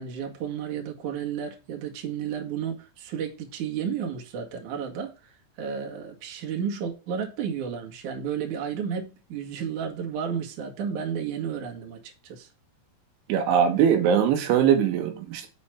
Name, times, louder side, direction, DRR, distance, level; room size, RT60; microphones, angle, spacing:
voice 1, 0.0-12.5, right 7 dB, 55° right, 2.7 m, -32 dB
voice 2, 13.3-15.5, right 8 dB, 85° right, 3.8 m, -21 dB
6.2 x 5.8 x 5.7 m
omnidirectional pair, 5.4 m